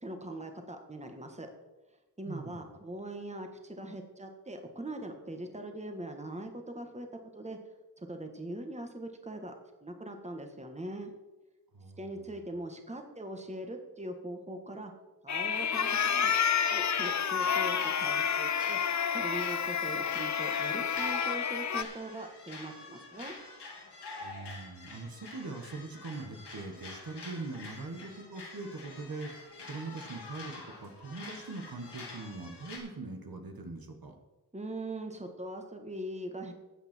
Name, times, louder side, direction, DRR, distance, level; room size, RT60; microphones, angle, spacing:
voice 1, 0.0-1.5 2.2-7.1 7.3-7.6 8.0-9.5 9.8-11.1 12.0-14.9 15.2-16.3 16.7-18.8 19.1-23.3 34.5-36.5, right 1 dB, 15° right, 4 dB, 1.7 m, -41 dB
voice 2, 2.3-2.6 11.7-12.1 24.2-34.2, right 3 dB, 60° right, 3 dB, 1.7 m, -42 dB
sound 1, 15.3-21.8, left 7 dB, 45° left, 0.6 m, -29 dB
sound 2, 16.7-32.8, left 3 dB, 85° left, 3.0 m, -47 dB
13.5 x 8.1 x 4.5 m, 1.1 s
cardioid pair, 60°, 40 cm